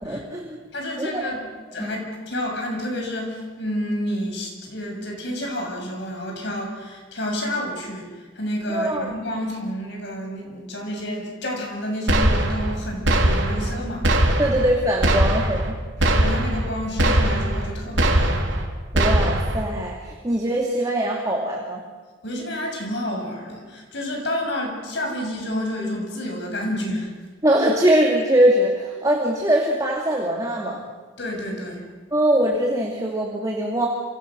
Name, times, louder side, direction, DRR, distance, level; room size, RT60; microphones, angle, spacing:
voice 1, 0.0-0.6 1.0-1.2 1.8-1.9 8.7-9.1 14.4-15.7 18.9-21.8 27.4-30.8 32.1-33.9, right 1 dB, 20° right, -1 dB, 2.7 m, -22 dB
voice 2, 0.7-1.4 1.7-14.4 16.0-18.4 22.2-27.1 31.2-31.8, left 1 dB, 60° left, 1 dB, 7.2 m, -29 dB
sound 1, 12.1-12.8 13.0-13.7 14.0-14.7 15.0-15.7 16.0-16.7 17.0-17.7 18.0-18.7 18.9-19.6, right 1 dB, 65° right, 3.9 m, -20 dB
28.0 x 27.5 x 6.4 m, 1.4 s
head